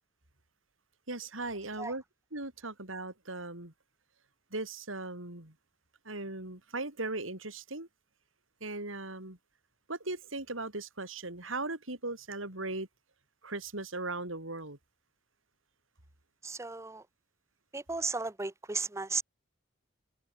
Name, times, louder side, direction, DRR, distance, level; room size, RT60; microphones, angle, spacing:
voice 1, 1.1-2.0 2.3-3.7 4.5-5.5 6.1-7.9 8.6-9.4 9.9-12.9 13.4-14.8, right 2 dB, 90° right, 5.7 m, -38 dB
voice 2, 16.4-17.0 17.7-19.2, right 4 dB, 15° right, 0.7 m, -35 dB
head